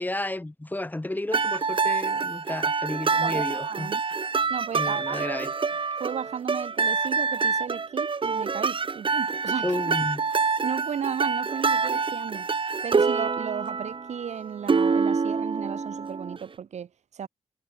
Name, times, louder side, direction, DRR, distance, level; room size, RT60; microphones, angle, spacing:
voice 1, 0.0-3.9 4.7-5.5 9.6-10.2, left 1 dB, 15° left, 5.7 m, -32 dB
sound 1, 1.3-16.4, right 5 dB, 50° right, 3.6 m, -26 dB
voice 2, 3.2-4.0 4.5-5.4 6.0-9.7 10.6-12.5 12.8-17.3, right 8 dB, 90° right, 3.6 m, -34 dB
wide cardioid pair, 90°, 11 cm